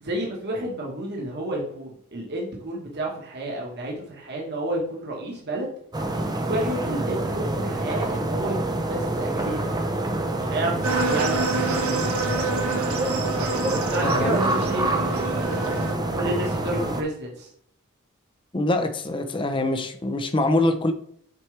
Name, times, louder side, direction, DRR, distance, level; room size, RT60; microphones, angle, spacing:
voice 1, 0.0-5.7 6.2-9.7 10.3-12.0 13.4-15.8 16.1-17.5, right 1 dB, 50° right, 1.5 m, -30 dB
sound 1, 5.9-17.0, right 2 dB, 20° right, 0.6 m, -26 dB
sound 2, 10.8-15.9, right 3 dB, 70° right, 1.1 m, -28 dB
voice 2, 14.0-14.4 18.5-20.9, left 2 dB, 25° left, 0.6 m, -24 dB
7.4 x 4.6 x 3.3 m
head